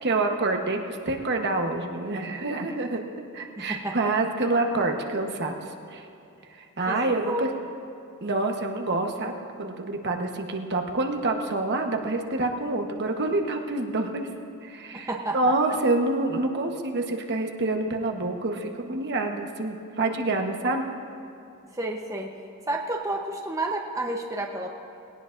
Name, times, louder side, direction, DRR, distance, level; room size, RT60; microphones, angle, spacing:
voice 1, 0.0-3.0 3.3-6.1 6.6-7.5 8.2-9.3 9.6-14.3 14.6-15.1 15.3-20.8, right 2 dB, 50° right, 3 dB, 1.1 m, -27 dB
voice 2, 3.6-4.1 6.9-7.0 7.2-7.4 14.9-15.8 21.7-24.7, right 2 dB, 15° right, 0 dB, 0.8 m, -31 dB
21.0 x 17.5 x 2.6 m, 2.7 s
head